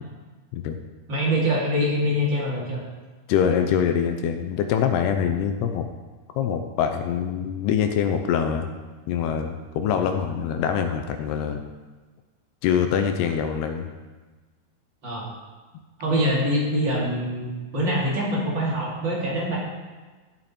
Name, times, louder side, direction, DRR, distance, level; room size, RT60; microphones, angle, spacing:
voice 1, 1.1-2.8 15.0-15.3 16.0-19.6, equal, 30° right, -5 dB, 2.6 m, -24 dB
voice 2, 3.3-5.9 6.3-8.7 9.1-11.6 12.6-13.9, left 8 dB, 80° left, 6 dB, 2.6 m, -24 dB
14.0 x 7.7 x 4.4 m, 1.3 s
omnidirectional pair, 5.1 m